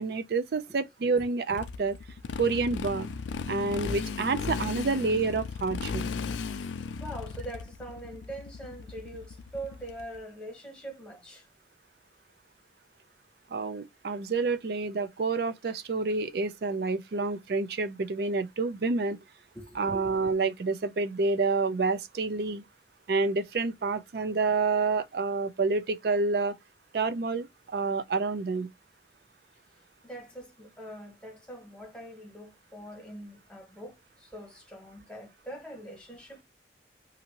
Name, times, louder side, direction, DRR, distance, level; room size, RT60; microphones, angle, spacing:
voice 1, 0.0-2.0 2.4-3.1 3.5-6.0 13.5-19.2 19.8-22.6 23.1-26.5 26.9-28.7, right 4 dB, 60° right, 0.4 m, -28 dB
Motorcycle, 1.5-10.2, left 5 dB, 90° left, 0.4 m, -36 dB
voice 2, 7.0-11.5 19.5-19.8 30.0-36.4, right 1 dB, 5° left, 0.9 m, -43 dB
2.8 x 2.6 x 2.8 m
head